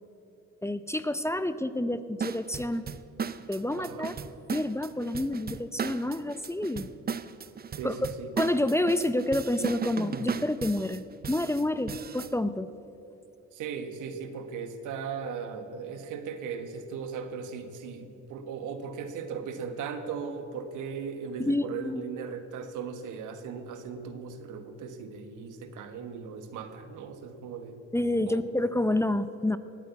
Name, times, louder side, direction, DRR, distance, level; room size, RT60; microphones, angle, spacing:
voice 1, 0.6-2.8 3.5-4.1 4.5-6.9 7.8-7.9 8.4-12.7 21.4-22.0 27.9-29.6, left 1 dB, 10° left, 13 dB, 0.5 m, -28 dB
sound 1, 2.2-12.3, right 6 dB, 30° right, 0.6 m, -36 dB
voice 2, 3.8-4.1 7.7-8.3 13.5-27.8 28.3-28.4, right 6 dB, 85° right, 9 dB, 1.4 m, -38 dB
18.5 x 8.8 x 8.3 m, 2.8 s
cardioid pair, 90°, 30 cm